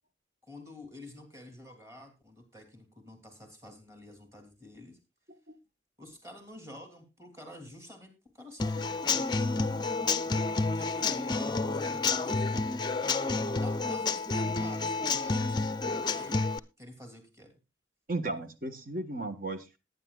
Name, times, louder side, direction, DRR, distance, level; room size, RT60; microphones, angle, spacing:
voice 1, 0.4-5.0 6.0-9.3 10.7-12.6 13.6-16.5 16.8-17.5, left 1 dB, 15° right, 5 dB, 3.1 m, -49 dB
Human voice / Acoustic guitar / Drum, 8.6-16.6, left 3 dB, 25° left, 0.5 m, -29 dB
voice 2, 18.1-19.8, right 2 dB, 45° right, 7 dB, 1.4 m, -35 dB
19.5 x 9.8 x 2.4 m, 0.26 s
head